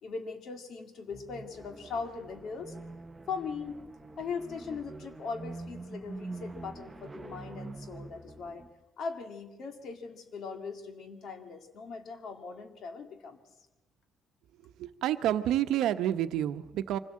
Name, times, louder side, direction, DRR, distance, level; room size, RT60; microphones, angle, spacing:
voice 1, 0.0-2.7 3.3-3.8 4.2-8.6 9.0-13.4, left 5 dB, 50° left, 7 dB, 2.2 m, -40 dB
sound 1, 1.1-8.7, right 2 dB, 10° right, 0.8 m, -45 dB
voice 2, 14.8-17.0, right 11 dB, 75° right, 10 dB, 1.0 m, -29 dB
25.0 x 16.5 x 7.6 m, 1.1 s
cardioid pair, 175°, 0 cm